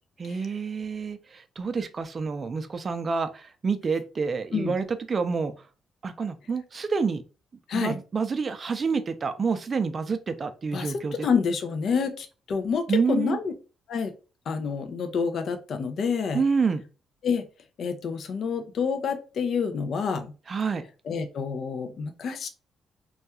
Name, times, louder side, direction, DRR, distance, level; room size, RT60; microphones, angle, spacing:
voice 1, 0.2-5.5 6.0-7.2 7.7-11.3 12.9-13.4 16.3-16.8 20.5-20.9, right 5 dB, 40° right, 9 dB, 0.4 m, -28 dB
voice 2, 10.7-13.5 13.9-14.1 14.5-16.4 17.2-17.4 17.8-20.3 21.1-22.5, left 6 dB, 60° left, 7 dB, 0.4 m, -28 dB
2.3 x 2.2 x 2.8 m, 0.32 s
cardioid pair, 90°, 0 cm